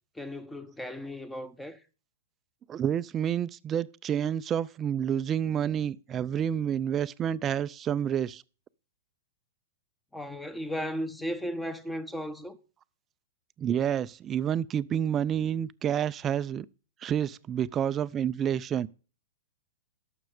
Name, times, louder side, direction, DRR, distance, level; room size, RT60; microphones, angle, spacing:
voice 1, 0.1-1.8 10.1-12.6, equal, 5° left, 1.0 m, -35 dB
voice 2, 2.7-8.4 13.6-16.7 17.0-18.9, right 9 dB, 25° right, 0.5 m, -29 dB
11.5 x 6.7 x 5.0 m
hypercardioid pair, 120°, 0 cm